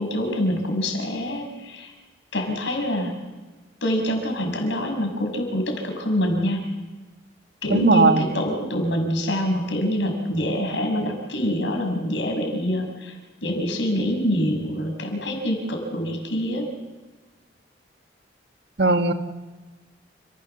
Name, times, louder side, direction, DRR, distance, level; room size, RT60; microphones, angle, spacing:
voice 1, 0.0-1.9 2.3-3.1 3.8-6.6 7.6-13.2 13.4-16.7, equal, 85° left, 4 dB, 6.0 m, -25 dB
voice 2, 7.7-8.2 18.8-19.1, right 3 dB, 65° right, 6 dB, 1.6 m, -18 dB
29.5 x 15.5 x 7.0 m, 1.3 s
head